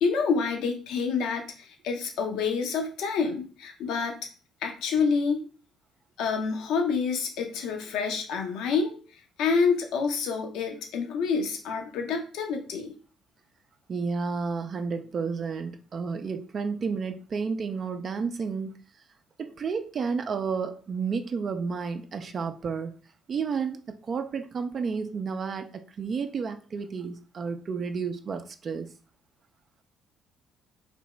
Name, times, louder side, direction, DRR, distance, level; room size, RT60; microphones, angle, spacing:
voice 1, 0.0-4.3 4.6-5.4 6.2-8.9 9.4-13.0, left 5 dB, 65° left, 0.6 m, -27 dB
voice 2, 13.9-18.7 19.4-22.9 23.3-28.9, right 5 dB, 45° right, 0.3 m, -31 dB
3.4 x 2.8 x 3.0 m
figure-of-eight pair, 50°, 0 cm